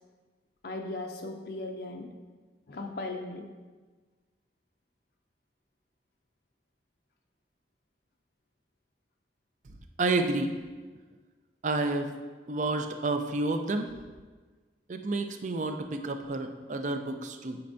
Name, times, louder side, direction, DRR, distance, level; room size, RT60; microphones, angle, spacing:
voice 1, 0.6-2.1 2.7-3.5, left 2 dB, 60° left, 2 dB, 0.5 m, -37 dB
voice 2, 10.0-10.6 11.6-12.1 12.5-13.9 14.9-17.6, right 2 dB, 45° right, 7 dB, 0.4 m, -30 dB
8.7 x 4.3 x 2.6 m, 1.4 s
head